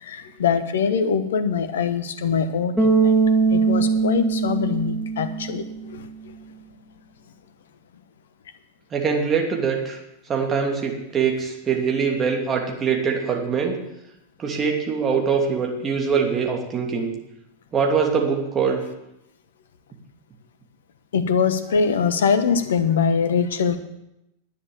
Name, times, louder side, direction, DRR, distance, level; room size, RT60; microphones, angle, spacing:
voice 1, 0.0-3.1 3.5-5.6 5.9-6.0 21.1-23.8, left 6 dB, 60° left, 11 dB, 1.1 m, -23 dB
Bass guitar, 2.8-5.9, right 4 dB, ahead, 1.9 m, -21 dB
voice 2, 8.9-10.0 10.3-13.7 14.4-17.1 17.7-18.8, right 6 dB, 25° right, 1 dB, 2.8 m, -23 dB
10.5 x 9.7 x 7.0 m, 0.87 s
figure-of-eight pair, 90°, 0 cm